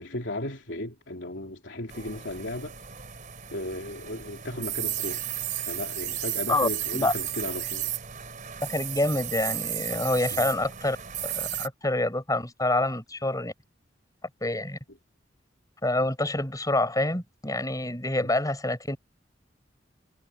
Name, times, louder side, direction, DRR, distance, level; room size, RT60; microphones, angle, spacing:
voice 1, 0.0-2.8 3.5-5.2 5.6-7.9 10.3-10.5, left 1 dB, 80° left, 3.1 m, -35 dB
sound 1, 1.9-11.7, right 11 dB, 45° right, 3.1 m, -34 dB
voice 2, 6.5-7.1 8.6-11.0 11.2-13.5 14.4-14.8 15.8-19.0, left 2 dB, 20° left, 6.6 m, -27 dB
head